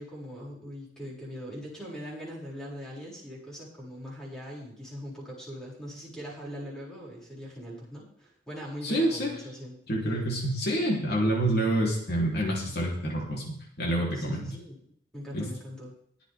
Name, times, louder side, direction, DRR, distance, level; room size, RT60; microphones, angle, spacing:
voice 1, 0.0-9.8 14.1-14.8 15.1-15.9, equal, 5° left, -5 dB, 6.6 m, -41 dB
voice 2, 8.8-9.3 9.9-13.4 13.8-14.5 15.3-15.5, right 1 dB, 60° left, -2 dB, 3.8 m, -27 dB
21.5 x 8.1 x 3.7 m, 0.68 s
head